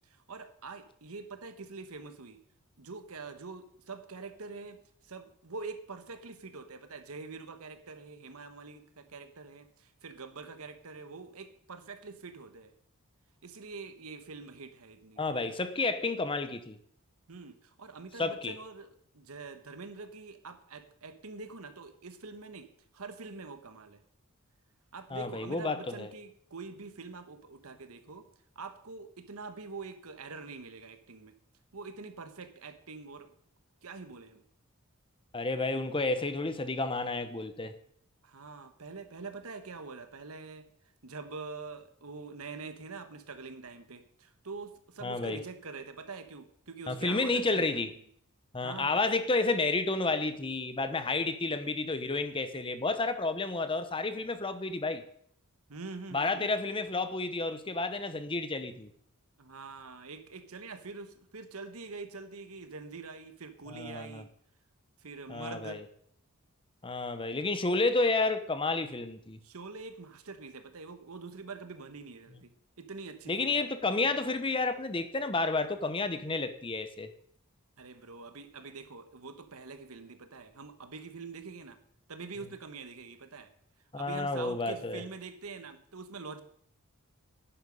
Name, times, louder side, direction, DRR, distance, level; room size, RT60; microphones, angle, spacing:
voice 1, 0.0-2.4 2.8-12.7 13.4-15.2 17.3-24.0 24.9-28.3 28.5-31.3 31.7-33.3 33.8-34.4 38.2-40.7 41.0-47.8 48.6-49.0 55.7-56.5 59.4-64.3 65.0-65.8 69.4-73.7 77.8-81.8 82.1-83.5 84.0-86.4, right 4 dB, 75° right, 9 dB, 1.2 m, -45 dB
voice 2, 15.2-16.8 18.2-18.5 25.1-26.1 35.3-37.7 45.0-45.4 46.9-47.9 48.5-55.0 56.1-58.9 63.7-64.2 65.3-65.8 66.8-69.4 73.3-77.1 83.9-85.0, left 3 dB, 25° left, 10 dB, 0.8 m, -31 dB
10.5 x 10.0 x 5.3 m, 0.65 s
head